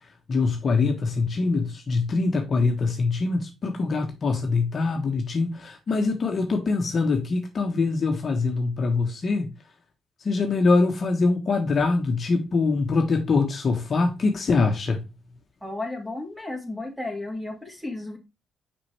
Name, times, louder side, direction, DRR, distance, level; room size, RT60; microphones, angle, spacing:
voice 1, 0.3-9.5 10.2-15.0, left 3 dB, 45° left, 1.2 m, -23 dB
voice 2, 15.6-18.2, left 2 dB, ahead, 2.3 m, -33 dB
5.8 x 5.4 x 3.3 m
cardioid pair, 90°, 0 cm